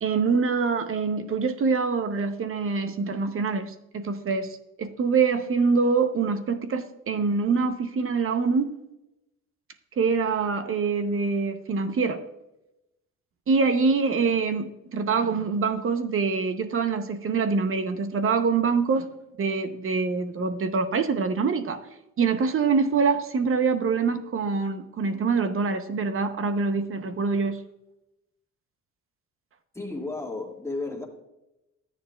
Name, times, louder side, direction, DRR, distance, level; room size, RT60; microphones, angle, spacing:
voice 1, 0.0-8.7 10.0-12.2 13.5-19.1 19.4-21.8 22.2-27.6, right 4 dB, 45° right, 0.8 m, -25 dB
voice 2, 29.7-31.1, left 2 dB, 10° left, 1.6 m, -33 dB
11.5 x 9.0 x 2.3 m
cardioid pair, 90°, 30 cm